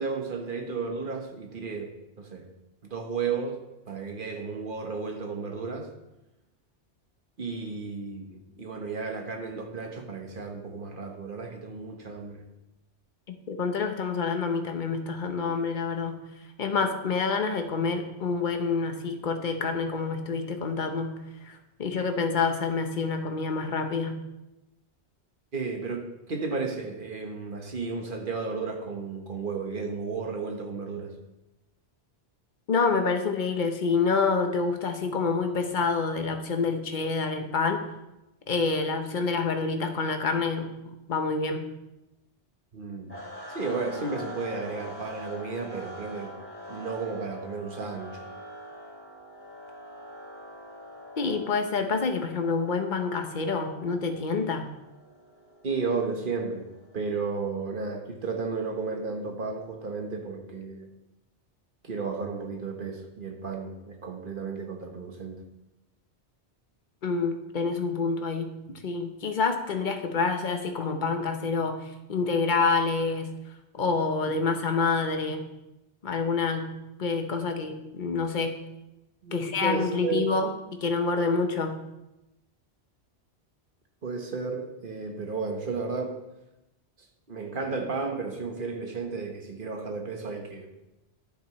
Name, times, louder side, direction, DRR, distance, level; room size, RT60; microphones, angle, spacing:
voice 1, 0.0-2.5 2.8-3.6 3.9-5.9 7.4-12.4 25.5-31.1 42.7-43.2 43.5-46.4 46.7-48.3 55.6-60.9 61.8-65.5 79.2-80.3 84.0-86.2 87.3-90.7, right 4 dB, 50° right, 3 dB, 1.4 m, -33 dB
voice 2, 13.3-16.2 16.6-24.2 32.7-37.8 38.5-40.7 41.1-41.7 51.2-54.7 67.0-68.5 68.8-73.3 73.7-75.5 76.0-76.7 77.0-78.6 79.3-81.8, left 4 dB, 45° left, 6 dB, 1.1 m, -27 dB
sound 1, 43.1-57.2, equal, 10° left, 2.5 m, -44 dB
11.5 x 9.7 x 3.1 m, 0.94 s
omnidirectional pair, 1.2 m